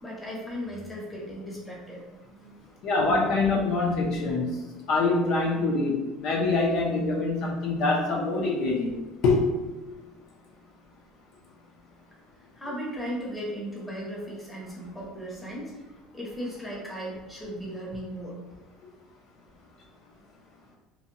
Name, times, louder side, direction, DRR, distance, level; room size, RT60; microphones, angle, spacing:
voice 1, 0.0-2.6 3.3-3.6 12.6-15.7 16.1-18.4, equal, 5° left, -5 dB, 0.7 m, -37 dB
voice 2, 2.8-4.6 4.9-9.0 9.2-9.4, left 3 dB, 55° left, -2 dB, 0.5 m, -25 dB
2.6 x 2.2 x 2.7 m, 1.1 s
cardioid pair, 140°, 0 cm